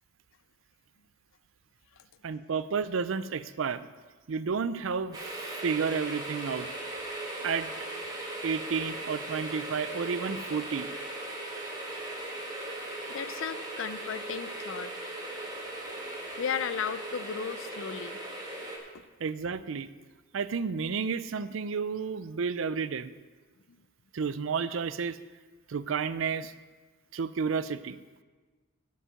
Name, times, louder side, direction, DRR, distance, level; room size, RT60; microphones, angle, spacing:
voice 1, 2.2-3.9 4.3-6.7 7.4-7.7 8.4-10.9 12.7-12.8 19.2-19.9 20.3-23.1 24.1-25.2 25.7-26.5 27.1-28.0, right 5 dB, 75° right, 15 dB, 0.5 m, -31 dB
sound 1, 5.1-18.8, right 2 dB, 20° right, 1.7 m, -38 dB
voice 2, 13.1-14.9 16.4-18.2 18.9-19.0, left 7 dB, 75° left, 14 dB, 0.5 m, -35 dB
11.0 x 5.5 x 7.7 m, 1.3 s
head